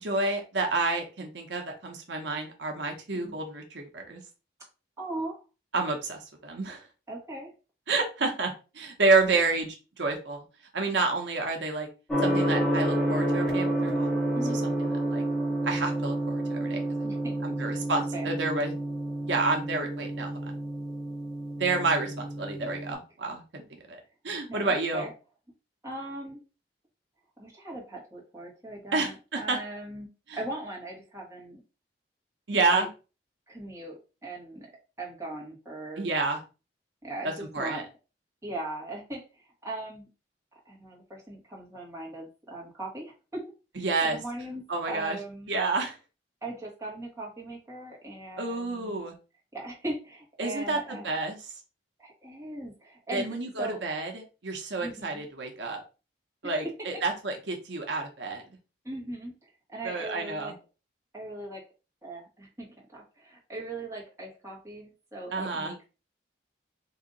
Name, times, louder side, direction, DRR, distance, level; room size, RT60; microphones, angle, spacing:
voice 1, 0.0-4.2 5.7-6.8 7.9-10.4 10.7-11.9 12.2-14.1 14.5-15.2 15.6-17.1 17.4-18.7 19.3-20.5 21.6-23.6 23.9-24.0 24.2-25.1 28.9-29.6 30.3-30.4 32.5-32.9 36.0-36.4 37.2-37.8 43.8-44.2 44.7-45.2 45.5-46.0 48.4-49.1 50.4-51.4 53.1-55.8 56.4-58.4 59.8-60.5 65.3-65.7, right 3 dB, 75° right, 3 dB, 0.9 m, -29 dB
voice 2, 5.0-5.4 7.1-7.5 14.3-14.6 17.0-17.7 18.1-18.3 24.5-25.1 25.8-26.4 27.4-30.1 30.3-31.6 32.7-32.9 33.5-34.7 35.0-36.1 37.0-37.8 38.4-40.1 40.6-43.4 43.7-45.6 46.4-49.0 49.5-51.1 52.0-53.8 54.8-55.2 56.4-56.5 58.8-59.3 59.7-60.5 61.1-61.6 62.0-65.8, right 2 dB, 15° right, -3 dB, 1.5 m, -39 dB
Gong, 12.1-22.9, right 1 dB, 5° left, 1.5 m, -29 dB
3.9 x 2.8 x 3.8 m, 0.32 s
head